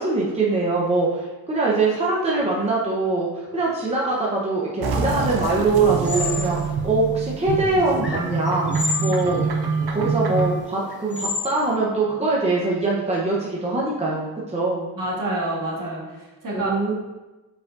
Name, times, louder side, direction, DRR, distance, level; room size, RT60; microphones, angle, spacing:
voice 1, 0.0-9.4 9.9-14.9 16.5-16.9, right 3 dB, 15° right, -5 dB, 0.8 m, -23 dB
sound 1, 4.8-10.6, right 4 dB, 75° right, 0.7 m, -26 dB
sound 2, 5.2-11.7, left 4 dB, 30° left, 0.9 m, -33 dB
voice 2, 14.9-16.7, right 2 dB, 60° right, -4 dB, 1.6 m, -28 dB
8.0 x 4.6 x 2.6 m, 1.1 s
wide cardioid pair, 175°, 37 cm